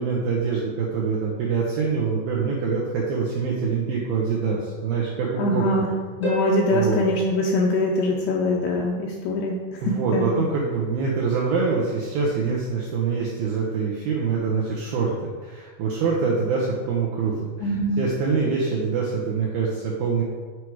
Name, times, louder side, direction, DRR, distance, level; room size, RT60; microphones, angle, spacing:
voice 1, 0.0-5.6 6.7-7.1 9.8-20.2, right 5 dB, 85° right, -3 dB, 2.1 m, -25 dB
voice 2, 5.4-5.9 6.2-9.6 9.9-10.3 17.6-18.0, left 1 dB, 85° left, -1 dB, 2.4 m, -23 dB
Harp, 6.2-8.7 12.2-12.3, equal, 45° left, 0.9 m, -33 dB
8.5 x 4.7 x 4.7 m, 1.5 s
omnidirectional pair, 5.4 m